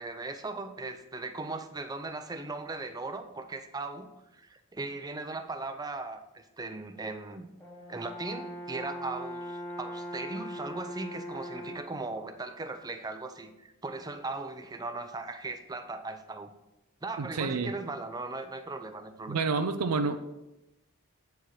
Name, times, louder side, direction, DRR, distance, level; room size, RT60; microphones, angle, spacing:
voice 1, 0.0-7.5 7.9-16.5 17.0-19.4, right 3 dB, 15° right, 8 dB, 0.5 m, -38 dB
Brass instrument, 7.6-12.0, equal, 10° left, 1.1 m, -40 dB
voice 2, 17.2-17.7 19.3-20.2, right 4 dB, 90° right, 8 dB, 0.5 m, -29 dB
8.2 x 4.7 x 4.4 m, 0.92 s
head